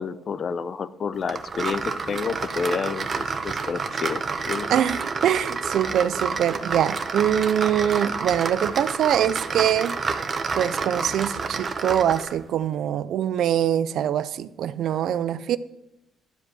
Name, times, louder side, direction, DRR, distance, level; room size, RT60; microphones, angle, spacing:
voice 1, 0.0-1.8 2.1-3.1 3.4-4.7, left 6 dB, 50° left, 0.6 m, -29 dB
sound 1, 1.3-12.4, right 4 dB, 40° right, 1.0 m, -29 dB
voice 2, 4.7-10.0 10.5-15.6, right 10 dB, 75° right, 0.5 m, -23 dB
11.5 x 5.1 x 8.1 m
cardioid pair, 90°, 0 cm